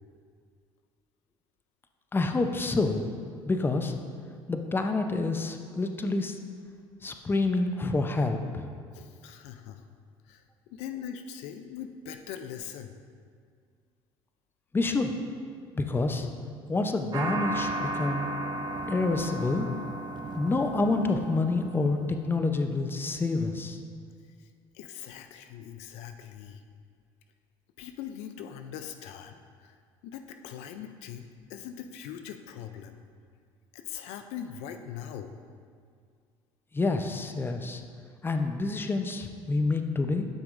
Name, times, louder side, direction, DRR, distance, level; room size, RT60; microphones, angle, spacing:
voice 1, 2.1-3.1 3.4-3.9 4.5-6.4 7.0-8.6 14.7-15.1 15.8-16.3 16.7-18.3 18.9-19.7 20.3-23.8 36.7-37.8 38.2-40.3, left 3 dB, 20° left, 6 dB, 0.6 m, -28 dB
voice 2, 8.9-9.8 10.2-10.4 10.7-13.0 24.4-26.6 27.8-29.8 30.0-33.0 33.7-35.4, left 9 dB, 75° left, 7 dB, 0.4 m, -41 dB
sound 1, 17.1-22.4, right 2 dB, 40° right, 0.9 m, -35 dB
11.5 x 6.0 x 2.6 m, 2.1 s
supercardioid pair, 80°, 11 cm